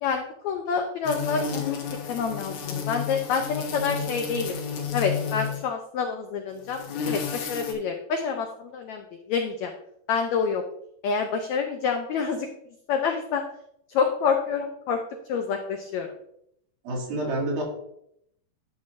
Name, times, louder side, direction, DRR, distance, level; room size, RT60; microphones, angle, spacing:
voice 1, 0.0-4.5 4.9-9.7 10.1-10.6 11.0-12.5 12.9-13.4 13.9-15.0 15.3-16.1, left 6 dB, 85° left, 4 dB, 1.6 m, -27 dB
sound 1, 1.0-5.7 6.6-7.7, left 6 dB, 65° left, 2.3 m, -31 dB
voice 2, 16.8-17.6, right 1 dB, 90° right, -1 dB, 3.8 m, -28 dB
11.5 x 7.0 x 2.5 m, 0.73 s
omnidirectional pair, 4.1 m